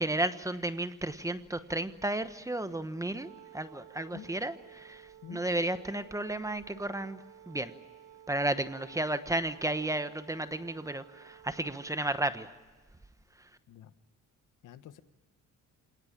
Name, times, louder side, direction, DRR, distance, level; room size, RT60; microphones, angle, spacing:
voice 1, 0.0-7.7 8.3-12.5 13.4-13.5, right 1 dB, 10° right, 11 dB, 1.0 m, -33 dB
Wind instrument woodwind instrument, 3.1-12.3, right 10 dB, 75° right, 2.0 m, -54 dB
voice 2, 14.6-15.0, left 11 dB, 75° left, 12 dB, 1.3 m, -47 dB
26.5 x 18.5 x 8.8 m, 1.3 s
cardioid pair, 130°, 32 cm